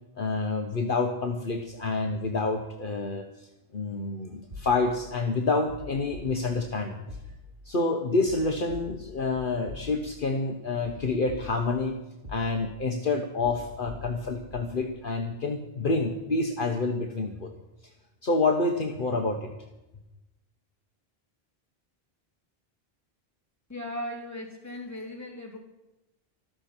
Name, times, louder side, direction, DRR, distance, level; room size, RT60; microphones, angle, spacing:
voice 1, 0.2-7.0 7.6-12.0 12.3-17.5 18.2-19.5, left 3 dB, 55° left, 4 dB, 1.3 m, -28 dB
sound 1, 4.5-5.1 5.7-6.7 7.1-7.7 8.3-10.3 10.8-11.9 12.2-12.9 13.4-14.8, left 2 dB, 45° right, 3.1 m, -45 dB
voice 2, 23.7-25.6, left 1 dB, 15° left, 0 dB, 3.1 m, -37 dB
14.0 x 13.0 x 6.0 m, 0.98 s
omnidirectional pair, 1.1 m